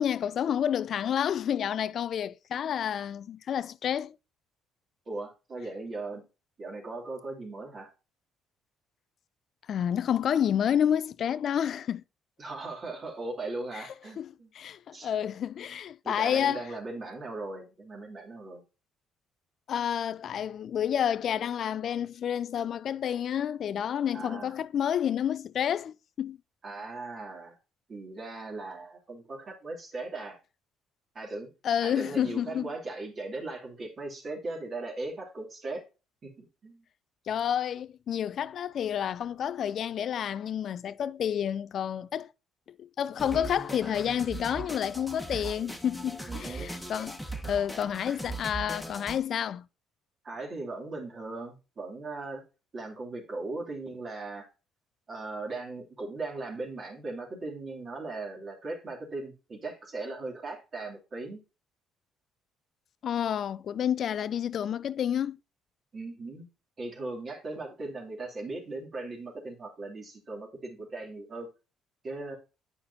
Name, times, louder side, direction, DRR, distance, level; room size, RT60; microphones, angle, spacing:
voice 1, 0.0-4.2 9.7-12.0 13.7-13.9 14.2-14.3 14.5-16.7 19.7-26.4 31.6-32.7 37.3-42.3 42.8-47.2 47.5-49.7 63.0-65.4, left 9 dB, 60° left, 0.3 m, -29 dB
voice 2, 5.1-6.2 6.6-7.9 12.4-14.5 14.9-15.1 16.0-18.6 24.1-24.6 26.6-27.5 27.9-30.4 31.1-31.5 31.8-35.8 36.2-36.8 46.3-46.9 50.2-52.4 52.7-54.5 55.1-61.4 65.9-66.5 66.8-71.5 72.0-72.4, right 3 dB, 45° right, 2.8 m, -38 dB
sound 1, 43.2-49.2, right 2 dB, 5° left, 1.4 m, -39 dB
9.3 x 5.7 x 2.7 m
supercardioid pair, 60°, 0 cm